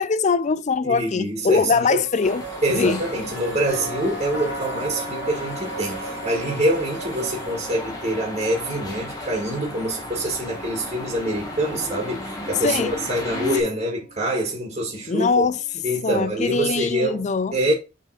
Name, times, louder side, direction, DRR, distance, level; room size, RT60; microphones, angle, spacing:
voice 1, 0.0-2.4 2.7-3.0 12.6-13.0 15.1-15.6 16.0-17.6, left 4 dB, 35° left, 0.4 m, -22 dB
voice 2, 0.8-2.0 2.6-15.5 15.8-17.7, right 1 dB, 35° right, 2.1 m, -25 dB
sound 1, 2.0-7.6, right 6 dB, 55° right, 0.9 m, -39 dB
sound 2, 2.2-13.6, left 1 dB, 20° left, 1.8 m, -35 dB
sound 3, 3.3-17.2, equal, 75° left, 2.4 m, -39 dB
7.5 x 4.0 x 4.9 m
head